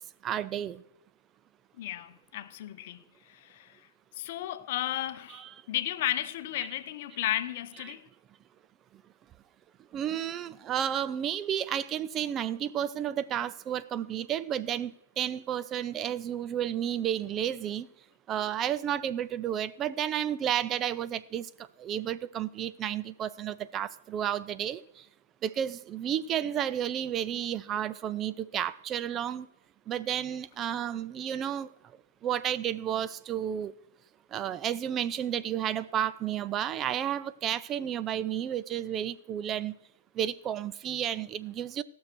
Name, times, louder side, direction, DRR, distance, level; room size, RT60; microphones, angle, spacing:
voice 1, 0.2-0.8 5.3-5.5 6.6-6.7 9.9-17.9 18.3-21.5 21.8-24.8 25.4-29.5 29.9-31.7 32.2-33.7 34.3-39.7 40.2-41.8, right 10 dB, 25° right, 0.4 m, -32 dB
voice 2, 1.8-3.9 4.1-8.1, left 13 dB, 50° left, 0.7 m, -34 dB
15.0 x 6.3 x 6.0 m
hypercardioid pair, 120°, 0 cm